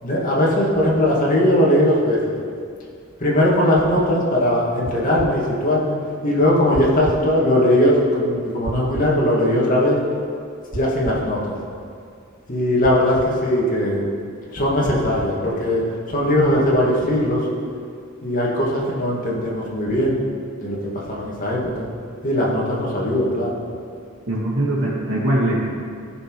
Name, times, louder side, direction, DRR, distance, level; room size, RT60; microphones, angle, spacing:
voice 1, 0.0-2.3 3.2-5.9 6.2-10.0 10.7-11.6 12.5-14.1 14.5-17.5 18.2-20.3 20.6-20.8 21.1-21.9 22.2-23.6, left 1 dB, 40° left, -5 dB, 2.2 m, -19 dB
sound 1, 4.8-5.3 6.7-7.2 8.6-9.1 10.7-11.3 12.8-13.3 14.8-15.4, right 2 dB, 30° right, 0.5 m, -31 dB
voice 2, 24.3-25.6, right 1 dB, 70° right, -6 dB, 2.8 m, -21 dB
14.5 x 5.9 x 4.8 m, 2.2 s
head